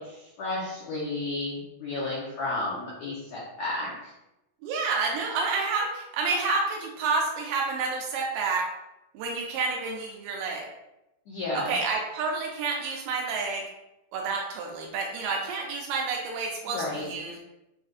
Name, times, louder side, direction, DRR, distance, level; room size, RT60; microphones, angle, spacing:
voice 1, 0.0-4.1 11.3-11.7 16.7-17.1, left 2 dB, 75° left, -8 dB, 1.6 m, -32 dB
voice 2, 4.6-8.7 9.1-10.7 11.5-13.6 14.1-17.4, right 4 dB, 80° right, 0 dB, 2.1 m, -29 dB
6.1 x 2.6 x 2.4 m, 0.92 s
omnidirectional pair, 4.2 m